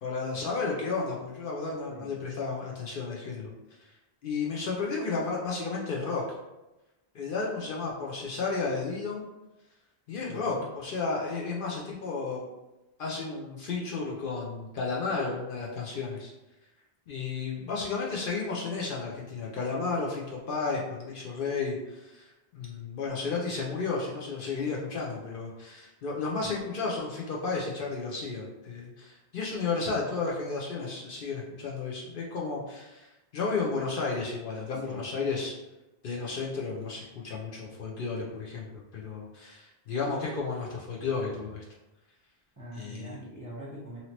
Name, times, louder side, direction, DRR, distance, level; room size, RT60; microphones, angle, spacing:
voice 1, 0.0-3.5 4.2-6.2 7.1-9.3 10.1-12.4 13.0-16.3 17.1-22.2 22.5-33.1 33.3-35.5 36.0-38.7 38.9-41.6 42.8-43.2, left 4 dB, 60° left, -2 dB, 0.7 m, -33 dB
voice 2, 10.3-10.7 26.4-26.5 34.8-35.0 42.6-44.0, equal, 20° right, -7 dB, 0.6 m, -43 dB
2.8 x 2.7 x 2.8 m, 1.0 s
omnidirectional pair, 1.1 m